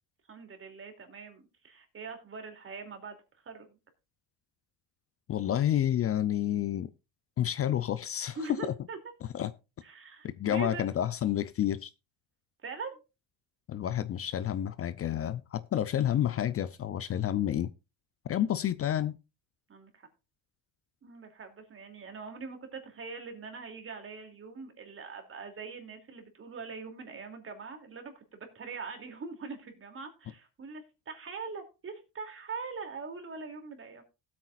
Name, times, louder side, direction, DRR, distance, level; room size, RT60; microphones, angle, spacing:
voice 1, 0.3-3.8 8.3-9.0 9.8-10.8 12.6-13.0 15.7-16.0 19.7-20.1 21.0-34.0, right 4 dB, 35° right, 2.8 m, -43 dB
voice 2, 5.3-6.9 7.4-8.7 9.3-9.5 10.2-11.9 13.7-17.7 18.3-19.2, left 11 dB, 40° left, 0.5 m, -29 dB
16.5 x 8.6 x 2.5 m
cardioid pair, 100°, 35 cm